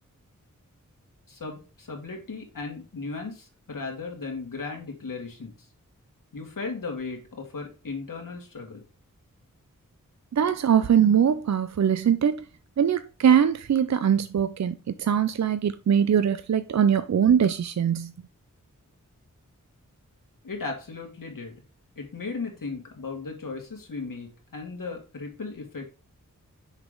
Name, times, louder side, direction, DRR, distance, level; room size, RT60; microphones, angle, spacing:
voice 1, 1.3-5.7 6.3-8.8 20.4-21.6 22.0-25.9, left 4 dB, 75° left, 2.3 m, -36 dB
voice 2, 10.3-12.4 12.8-18.1, right 8 dB, 55° right, 0.5 m, -22 dB
6.5 x 5.0 x 3.8 m
cardioid pair, 40°, 33 cm